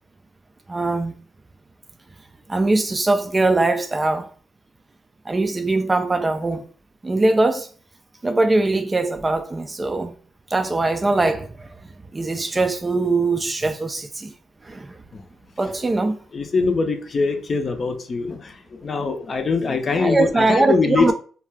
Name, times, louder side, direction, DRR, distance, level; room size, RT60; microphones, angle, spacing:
voice 1, 0.7-1.1 2.5-4.3 5.3-6.7 7.0-7.7 8.2-10.1 10.5-11.7 12.1-14.3 14.6-15.0 15.6-16.2 20.0-21.1, right 2 dB, 20° right, 0.3 m, -21 dB
voice 2, 16.3-21.1, left 4 dB, 40° left, 0.5 m, -23 dB
2.3 x 2.2 x 3.3 m
cardioid pair, 90°, 0 cm